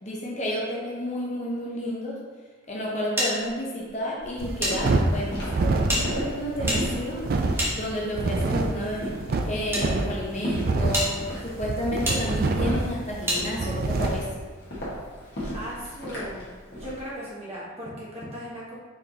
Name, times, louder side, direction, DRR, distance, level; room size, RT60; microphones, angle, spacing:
voice 1, 0.0-2.2 2.7-7.3 7.7-9.1 9.4-11.1 11.4-14.3, equal, 30° left, -4 dB, 0.7 m, -31 dB
sound 1, 3.2-4.7 5.0-5.1 5.8-8.3 9.1-9.8 10.4-10.5 10.9-11.1 12.0-12.2 13.3-13.4, equal, 10° right, 0.9 m, -29 dB
Walk footsteps, 4.2-17.0, equal, 50° left, 1.4 m, -35 dB
sound 2, 4.4-14.3, right 2 dB, 45° right, 0.3 m, -27 dB
voice 2, 15.5-16.5 16.8-18.7, equal, 30° right, -7 dB, 1.2 m, -37 dB
4.4 x 4.4 x 2.8 m, 1.4 s
head